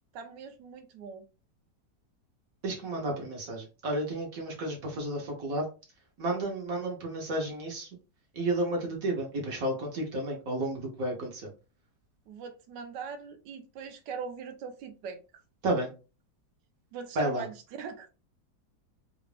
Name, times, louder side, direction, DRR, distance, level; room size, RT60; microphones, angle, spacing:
voice 1, 0.1-1.2 12.3-15.4 16.9-18.1, right 6 dB, 85° right, 6 dB, 1.3 m, -41 dB
voice 2, 2.6-5.7 6.2-7.9 8.3-11.5 15.6-15.9 17.2-17.4, right 1 dB, 55° right, 0 dB, 1.2 m, -32 dB
3.3 x 2.5 x 3.2 m, 0.31 s
omnidirectional pair, 1.9 m